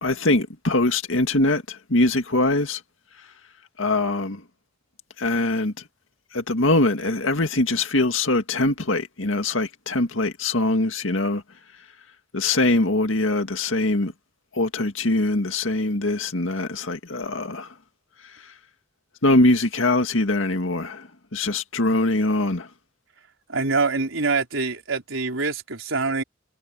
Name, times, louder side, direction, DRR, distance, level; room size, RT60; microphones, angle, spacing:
voice 1, 0.0-2.8 3.8-4.4 5.2-5.7 6.3-11.4 12.3-14.1 14.5-17.7 19.2-22.7, left 2 dB, 75° left, 2.1 m, -22 dB
voice 2, 23.5-26.2, right 4 dB, 85° right, 4.2 m, -25 dB
head